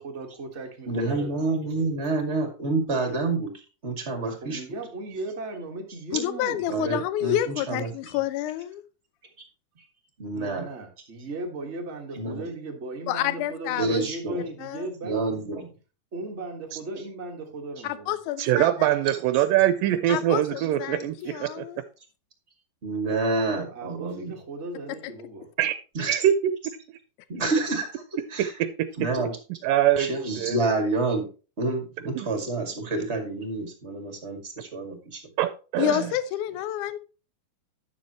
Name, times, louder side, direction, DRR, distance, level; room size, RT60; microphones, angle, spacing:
voice 1, 0.0-1.3 4.4-6.6 10.3-15.2 16.1-18.2 23.4-25.5, right 2 dB, 55° right, 0.7 m, -37 dB
voice 2, 0.9-3.5 3.8-4.6 6.7-8.2 10.2-10.7 12.1-12.5 13.8-14.4 15.0-15.7 20.1-20.2 20.6-20.7 22.8-24.3 25.9-26.2 27.3-28.0 28.3-28.5 29.0-29.4 30.0-31.3 31.6-35.2, right 3 dB, 25° right, 1.5 m, -28 dB
voice 3, 6.1-8.8 13.1-14.0 14.6-14.9 17.8-18.7 20.1-21.8 35.8-37.0, left 12 dB, 80° left, 1.9 m, -29 dB
voice 4, 18.4-21.7 25.6-25.8 26.1-26.8 28.4-29.1 29.6-30.1 30.4-30.7 32.2-32.3 35.4-36.1, right 12 dB, 80° right, 2.1 m, -24 dB
11.0 x 7.1 x 3.0 m
omnidirectional pair, 4.3 m